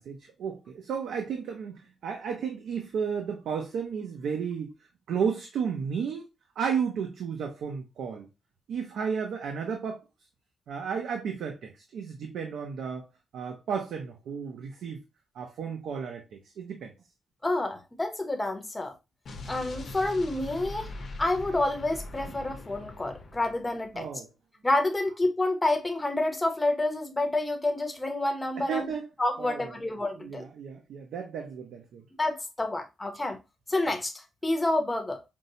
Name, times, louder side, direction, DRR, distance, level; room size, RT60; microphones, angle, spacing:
voice 1, 0.0-4.7 5.1-6.2 6.6-8.3 8.7-10.0 10.7-13.1 13.3-15.0 15.3-16.2 16.6-16.9 23.9-24.3 28.6-29.0 29.4-29.7 30.2-32.0, right 6 dB, 90° right, 0.6 m, -33 dB
voice 2, 17.4-18.9 19.5-24.1 24.6-28.9 29.2-30.5 32.2-33.4 33.7-35.2, left 2 dB, 15° left, 0.7 m, -28 dB
Explosion, 19.3-24.0, left 2 dB, 50° left, 0.7 m, -42 dB
5.3 x 2.1 x 2.7 m
wide cardioid pair, 155°, 0 cm